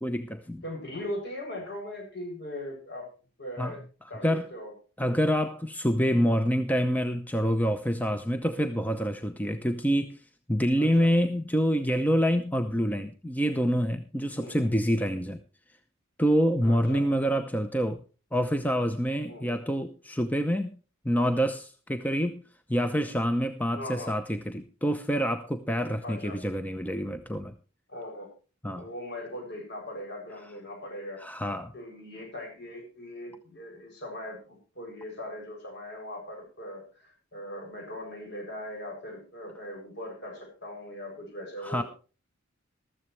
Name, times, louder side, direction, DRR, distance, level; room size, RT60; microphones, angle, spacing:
voice 1, 0.0-0.6 3.6-3.7 4.2-4.5 5.0-10.2 10.5-15.4 16.2-18.0 18.3-20.7 21.0-22.4 22.7-27.5 28.6-28.9 31.2-31.7 41.6-41.8, equal, 10° left, 8 dB, 0.7 m, -27 dB
voice 2, 0.6-3.1 3.4-3.8 4.1-4.7 10.7-11.1 14.4-14.7 16.6-17.0 19.3-19.6 23.7-24.1 26.0-26.4 27.9-28.3 28.7-31.2 31.7-41.8, left 1 dB, 55° left, 2 dB, 7.2 m, -40 dB
14.5 x 13.5 x 3.3 m, 0.35 s
head